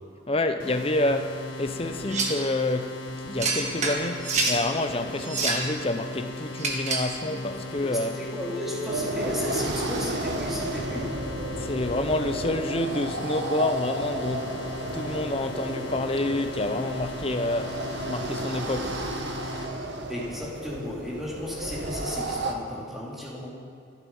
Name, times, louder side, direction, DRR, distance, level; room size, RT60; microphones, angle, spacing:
voice 1, 0.3-8.2 11.6-14.6 14.9-17.8 18.1-19.0, left 2 dB, 30° left, 0.8 m, -28 dB
sound 1, 0.6-19.7, left 2 dB, 80° left, 3.2 m, -38 dB
sound 2, 2.1-2.4 3.4-4.6 5.2-5.7 6.6-7.1, right 3 dB, 35° right, 1.9 m, -27 dB
voice 2, 7.8-11.2 20.1-23.5, left 1 dB, ahead, 2.9 m, -34 dB
sound 3, 8.9-22.5, right 1 dB, 65° right, 1.3 m, -33 dB
27.5 x 9.3 x 5.6 m
head